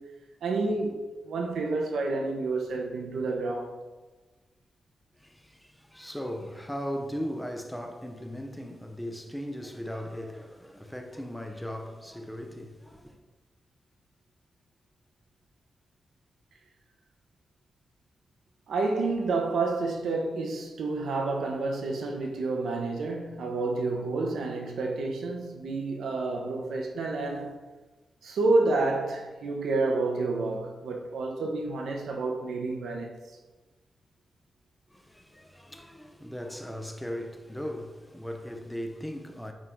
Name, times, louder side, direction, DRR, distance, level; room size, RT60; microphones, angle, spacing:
voice 1, 0.4-3.8 18.7-27.6 28.2-33.2, right 3 dB, 90° right, 1.2 m, -29 dB
voice 2, 5.2-13.2 34.9-39.5, equal, 5° left, 0.7 m, -38 dB
9.0 x 3.9 x 4.6 m
wide cardioid pair, 180°, 0 cm